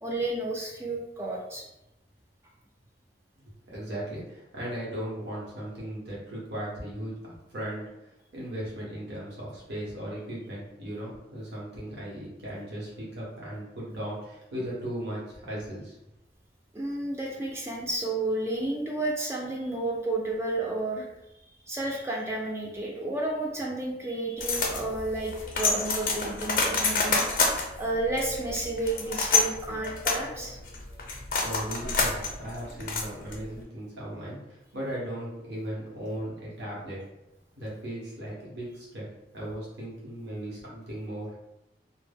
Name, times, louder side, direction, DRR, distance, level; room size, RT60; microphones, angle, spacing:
voice 1, 0.0-1.6 16.7-21.1 21.7-27.2 27.8-30.6, right 2 dB, 15° right, -1 dB, 0.3 m, -31 dB
voice 2, 3.5-7.8 8.3-16.0 31.4-37.0 37.5-39.1 39.3-41.3, right 1 dB, 75° right, -5 dB, 0.8 m, -37 dB
sound 1, 24.4-33.6, left 4 dB, 50° left, 0.4 m, -28 dB
2.1 x 2.0 x 3.3 m, 0.90 s
head